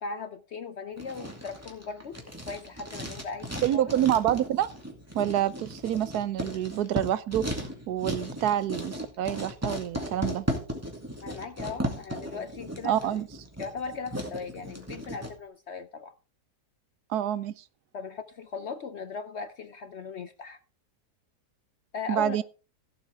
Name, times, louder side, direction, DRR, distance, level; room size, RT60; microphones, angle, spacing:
voice 1, 0.0-2.2 2.5-3.9 11.2-13.2 13.6-16.1 17.9-20.6 21.9-22.4, left 5 dB, 60° left, 0.7 m, -38 dB
Writing, 1.0-15.3, equal, 10° right, 2.3 m, -36 dB
voice 2, 3.6-4.7 5.1-10.5 12.8-13.3 17.1-17.5 22.1-22.4, right 11 dB, 75° right, 1.2 m, -27 dB
16.5 x 7.4 x 3.5 m
omnidirectional pair, 1.7 m